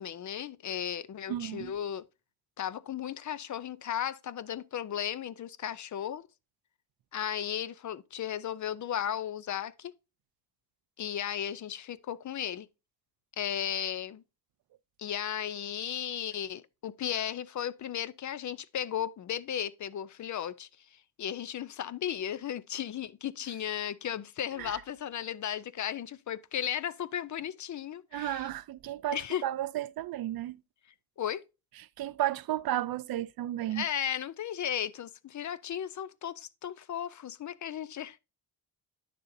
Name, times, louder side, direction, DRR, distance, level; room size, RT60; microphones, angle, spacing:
voice 1, 0.0-2.0 2.6-6.3 7.1-9.9 11.0-12.7 13.4-14.2 15.0-28.5 29.1-29.4 31.2-31.4 33.7-38.2, left 10 dB, 50° left, 0.5 m, -35 dB
voice 2, 1.3-1.7 24.6-24.8 28.1-30.6 32.0-33.8, right 13 dB, 65° right, 0.5 m, -33 dB
9.9 x 6.7 x 2.6 m
cardioid pair, 115°, 40 cm